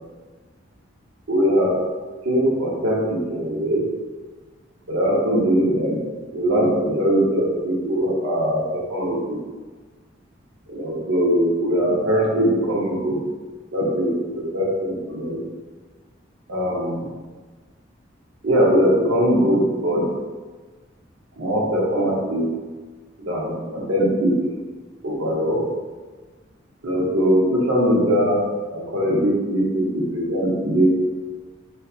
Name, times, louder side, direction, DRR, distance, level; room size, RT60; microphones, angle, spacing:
voice 1, 1.3-1.8 2.2-3.9 4.9-6.0 6.3-9.4 10.7-13.3 13.7-15.4 16.5-17.1 18.4-20.0 21.4-22.5 23.2-24.4 25.0-25.6 26.8-28.4 28.7-30.9, equal, 85° right, -4 dB, 0.7 m, -21 dB
2.7 x 2.3 x 2.3 m, 1.4 s
head